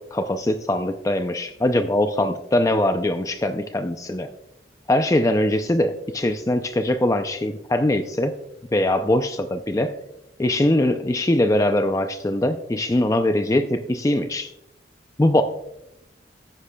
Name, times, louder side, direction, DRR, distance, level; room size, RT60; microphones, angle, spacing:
voice 1, 0.0-4.3 4.9-8.3 8.7-9.9 10.4-14.5 15.2-15.4, left 1 dB, 20° left, 8 dB, 0.4 m, -22 dB
13.5 x 9.9 x 2.2 m, 0.85 s
head